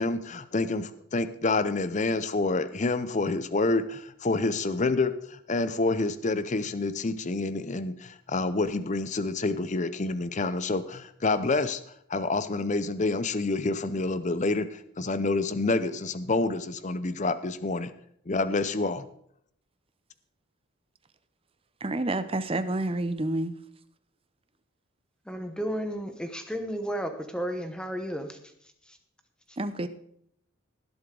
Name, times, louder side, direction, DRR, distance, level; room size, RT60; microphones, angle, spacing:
voice 1, 0.0-11.8 12.1-17.9 18.3-19.1, left 3 dB, 35° left, 13 dB, 0.6 m, -28 dB
voice 2, 21.8-23.6 29.6-29.9, right 2 dB, 25° right, 12 dB, 0.6 m, -29 dB
voice 3, 25.3-28.4 28.9-29.0, equal, 5° left, 6 dB, 1.0 m, -33 dB
18.5 x 7.9 x 3.8 m, 0.69 s
head